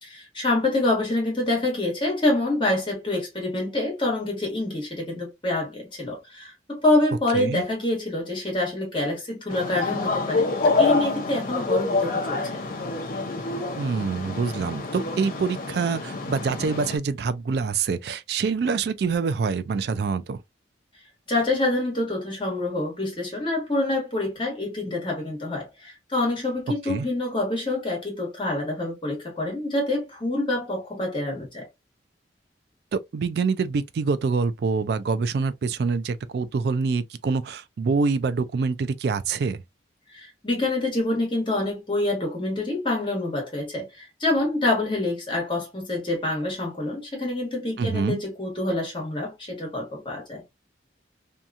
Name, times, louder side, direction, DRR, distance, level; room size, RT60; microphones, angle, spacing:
voice 1, 0.0-12.6 21.3-31.7 40.1-50.4, left 2 dB, 25° left, 1.2 m, -26 dB
sound 1, 9.5-17.0, left 3 dB, 45° left, 0.6 m, -27 dB
voice 2, 13.8-20.4 26.9-27.1 32.9-39.6 47.8-48.2, right 5 dB, 55° right, 0.3 m, -26 dB
2.8 x 2.3 x 2.4 m
head